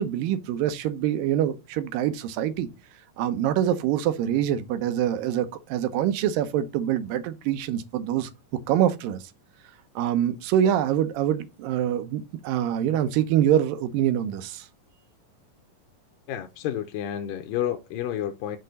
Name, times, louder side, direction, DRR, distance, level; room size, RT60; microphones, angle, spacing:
voice 1, 0.0-2.7 3.2-8.3 8.7-9.2 10.0-14.7, right 10 dB, 80° right, 2.4 m, -25 dB
voice 2, 16.3-18.6, left 11 dB, 85° left, 2.3 m, -30 dB
6.4 x 4.3 x 4.0 m
omnidirectional pair, 4.1 m